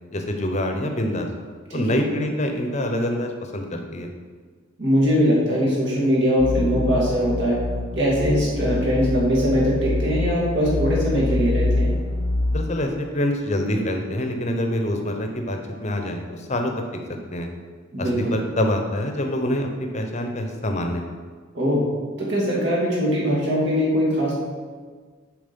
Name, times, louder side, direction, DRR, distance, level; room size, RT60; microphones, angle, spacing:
voice 1, 0.1-1.3 1.7-4.1 12.5-16.7 17.3-17.5 18.0-19.7 19.9-21.0, left 1 dB, 35° left, 4 dB, 0.8 m, -25 dB
voice 2, 4.8-7.6 8.0-11.9 17.9-18.4 21.5-21.9 22.2-24.4, equal, 55° right, -5 dB, 2.4 m, -21 dB
sound 1, 6.4-12.9, left 2 dB, 90° left, 0.7 m, -26 dB
7.1 x 5.0 x 5.3 m, 1.5 s
head